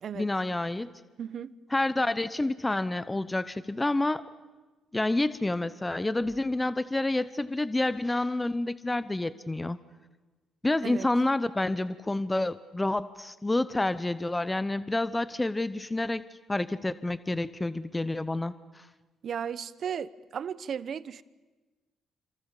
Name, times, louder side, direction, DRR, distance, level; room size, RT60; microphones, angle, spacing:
voice 1, 0.1-0.9 1.7-4.2 4.9-9.8 10.6-16.2 16.5-18.9, left 2 dB, 15° left, 14 dB, 0.8 m, -28 dB
voice 2, 1.2-1.5 10.8-11.1 19.2-21.2, right 8 dB, 55° right, 16 dB, 0.9 m, -35 dB
27.5 x 26.0 x 7.2 m, 1.2 s
cardioid pair, 90°, 0 cm